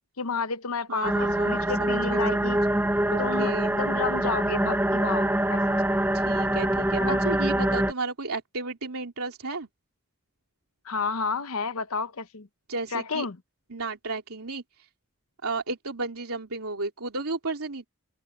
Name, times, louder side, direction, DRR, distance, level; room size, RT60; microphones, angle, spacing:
voice 1, 0.2-2.6 3.2-5.8 7.0-7.2 10.8-12.5 12.9-13.4, left 4 dB, 80° left, 0.9 m, -31 dB
voice 2, 0.9-2.2 3.1-3.8 6.1-9.7 12.7-13.2 13.7-14.9 15.4-17.9, right 3 dB, 85° right, 3.0 m, -33 dB
sound 1, 1.0-7.9, right 1 dB, 10° right, 0.4 m, -25 dB
open air
head